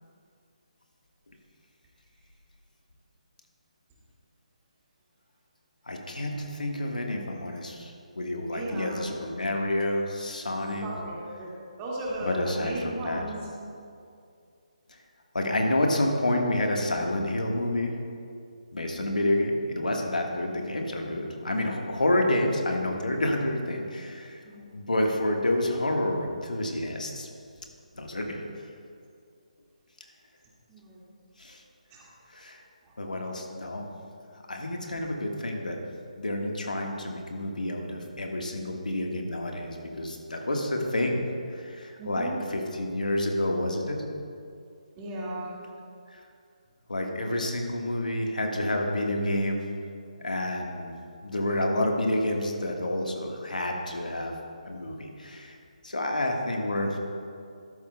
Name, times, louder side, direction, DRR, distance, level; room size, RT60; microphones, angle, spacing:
voice 1, 5.8-10.9 12.2-13.2 14.9-15.0 15.3-18.0 18.7-24.4 24.7-27.3 27.9-28.4 31.4-31.6 32.3-32.6 33.0-33.9 34.5-35.8 36.2-41.2 41.5-44.0 46.1-46.2 46.9-49.6 50.2-50.9 51.2-54.3 54.6-55.6 55.8-57.0, left 1 dB, 85° left, 1 dB, 1.4 m, -29 dB
voice 2, 8.5-9.2 10.6-13.4 19.2-19.4 24.5-24.6 30.7-31.0 31.9-32.1 32.9-33.0 42.0-42.4 45.0-45.5, right 1 dB, 20° right, -5 dB, 1.9 m, -36 dB
12.5 x 11.5 x 2.2 m, 2.4 s
figure-of-eight pair, 155°, 4 cm